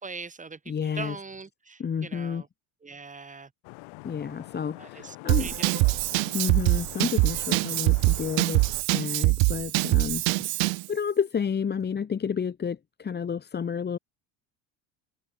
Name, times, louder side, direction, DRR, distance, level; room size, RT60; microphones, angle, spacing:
voice 1, 0.0-2.5 2.8-3.5 4.8-6.0, right 4 dB, 15° right, 5.2 m, -41 dB
voice 2, 0.7-1.2 1.8-2.4 4.0-5.5 6.3-8.6 8.9-14.0, left 7 dB, 20° left, 1.3 m, -30 dB
Vehicle horn car horn honking / Traffic noise roadway noise, 3.6-8.8, left 28 dB, 80° left, 4.1 m, -44 dB
Drum kit / Drum, 5.3-10.9, right 27 dB, 70° right, 1.0 m, -24 dB
cardioid pair, 145°, 47 cm